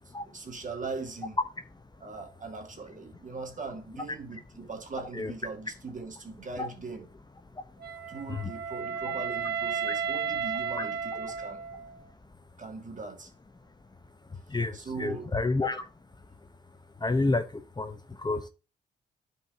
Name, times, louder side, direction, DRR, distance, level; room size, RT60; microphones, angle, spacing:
voice 1, 0.1-1.4 2.0-7.1 8.1-11.6 12.6-13.3 14.7-15.4, right 4 dB, 45° right, 1.9 m, -40 dB
Wind instrument woodwind instrument, 7.8-12.0, right 7 dB, 60° right, 1.4 m, -33 dB
voice 2, 14.3-15.9 17.0-18.5, left 3 dB, 20° left, 0.8 m, -30 dB
11.5 x 4.8 x 2.7 m
supercardioid pair, 60°, 19 cm